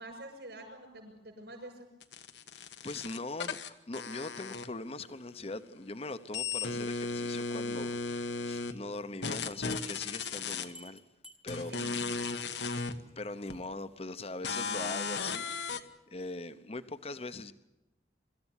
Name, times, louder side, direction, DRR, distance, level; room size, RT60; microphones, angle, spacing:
voice 1, 0.0-1.9 11.6-12.4, right 1 dB, 65° right, 6.4 m, -47 dB
sound 1, 2.0-5.1 5.4-8.7 9.2-10.7 11.5-12.9 13.5-13.6 14.4-15.8, left 4 dB, 80° left, 1.3 m, -36 dB
voice 2, 2.6-11.0 11.4-11.9 13.2-15.7 16.1-17.5, left 2 dB, 35° left, 0.9 m, -41 dB
Bell, 9.3-12.0 12.3-12.5 12.8-12.9 13.2-13.3 13.6-13.7, equal, 5° right, 1.2 m, -52 dB
25.0 x 14.0 x 9.9 m
head